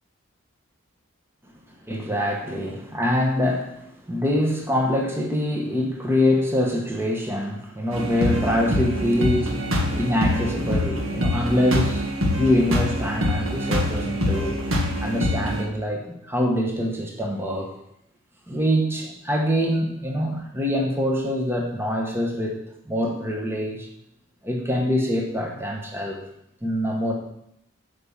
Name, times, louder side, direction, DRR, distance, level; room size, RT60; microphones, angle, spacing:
voice 1, 1.9-12.1 12.4-14.6 15.0-17.7 18.5-22.6 22.8-23.9 24.4-26.2 26.6-27.1, equal, 10° right, 0 dB, 1.2 m, -24 dB
sound 1, 7.9-15.6, left 1 dB, 85° right, 1.7 m, -25 dB
8.0 x 5.3 x 7.2 m, 0.78 s
head